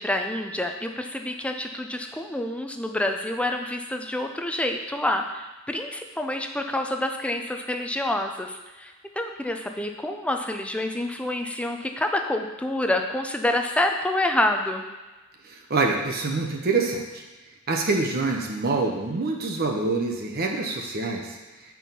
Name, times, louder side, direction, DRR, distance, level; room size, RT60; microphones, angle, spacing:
voice 1, 0.0-14.9, left 1 dB, 5° left, 4 dB, 0.5 m, -27 dB
voice 2, 15.4-17.2 17.7-21.4, right 3 dB, 45° right, 1 dB, 0.8 m, -26 dB
7.5 x 4.7 x 5.3 m, 1.2 s
head